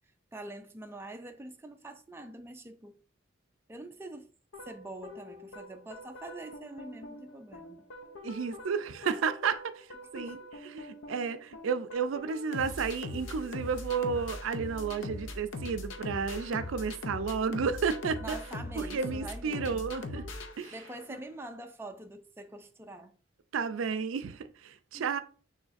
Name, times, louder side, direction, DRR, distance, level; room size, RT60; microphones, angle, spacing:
voice 1, 0.3-3.0 3.7-4.3 4.6-7.9 10.1-10.5 18.2-19.9 20.7-23.1 24.9-25.1, right 2 dB, 10° right, 0.4 m, -45 dB
sound 1, 4.5-21.2, left 2 dB, 70° left, 0.6 m, -42 dB
voice 2, 8.2-9.9 10.1-10.4 10.7-18.4 18.8-20.3 20.6-20.7 21.1-21.2 23.5-25.2, right 5 dB, 85° right, 0.4 m, -32 dB
6.2 x 3.2 x 2.5 m
head